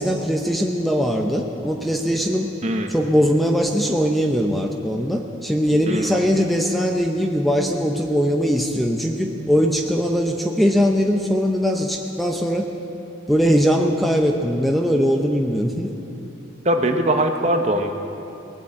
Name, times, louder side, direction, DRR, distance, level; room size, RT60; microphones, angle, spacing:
voice 1, 0.0-2.5 2.9-12.7 13.3-15.9, equal, ahead, 2 dB, 0.7 m, -20 dB
voice 2, 2.6-2.9 5.9-6.2 16.6-17.9, right 1 dB, 35° right, 5 dB, 0.9 m, -21 dB
19.5 x 7.8 x 8.7 m, 3.0 s
head